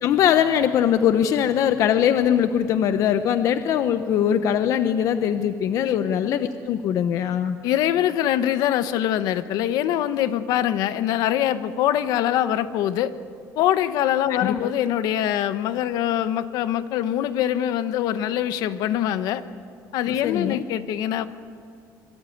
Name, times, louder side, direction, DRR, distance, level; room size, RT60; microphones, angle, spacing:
voice 1, 0.0-7.6 14.4-14.6 20.1-20.6, left 9 dB, 50° left, 10 dB, 0.9 m, -21 dB
voice 2, 7.6-13.1 13.6-19.4 19.9-21.3, left 11 dB, 65° left, 12 dB, 1.2 m, -23 dB
26.0 x 23.0 x 9.4 m, 2.3 s
cardioid pair, 165°, 7 cm